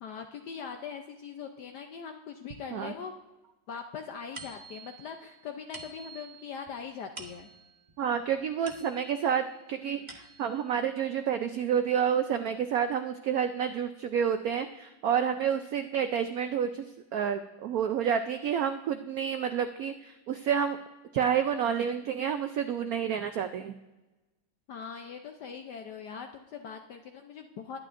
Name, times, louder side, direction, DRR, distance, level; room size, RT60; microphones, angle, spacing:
voice 1, 0.0-3.1 3.7-7.5 24.7-27.8, left 6 dB, 65° left, 5 dB, 1.1 m, -41 dB
sound 1, 4.4-9.3 9.8-10.7, right 3 dB, 35° right, 0.7 m, -49 dB
voice 2, 8.0-20.8 21.1-23.7, right 8 dB, 80° right, 8 dB, 0.8 m, -29 dB
21.0 x 9.1 x 2.5 m, 1.1 s
omnidirectional pair, 2.2 m